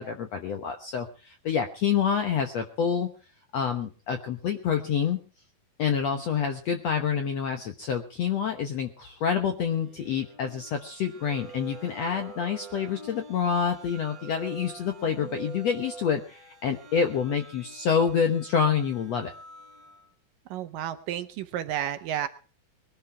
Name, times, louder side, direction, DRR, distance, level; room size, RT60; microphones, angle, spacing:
voice 1, 0.0-3.1 3.5-5.2 5.8-19.3, left 7 dB, 70° left, 6 dB, 1.6 m, -27 dB
sound 1, 9.8-20.1, right 4 dB, 35° right, 1.5 m, -46 dB
voice 2, 20.5-22.3, right 11 dB, 75° right, 10 dB, 2.2 m, -31 dB
21.5 x 12.0 x 4.7 m, 0.38 s
omnidirectional pair, 4.7 m